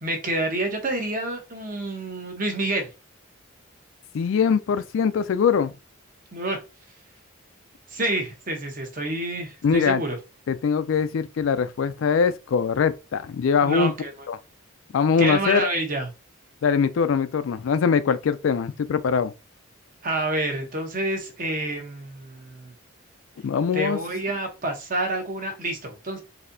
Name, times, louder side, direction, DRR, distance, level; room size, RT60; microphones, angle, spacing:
voice 1, 0.0-2.9 6.3-6.6 7.9-10.2 13.6-14.1 15.2-16.1 20.0-22.7 23.7-26.2, right 2 dB, 40° right, 0.9 m, -28 dB
voice 2, 4.1-5.7 9.6-10.0 10.5-13.9 14.3-14.4 14.9-15.7 16.6-19.3 23.4-24.0, left 6 dB, 70° left, 0.3 m, -22 dB
4.0 x 2.7 x 2.6 m
head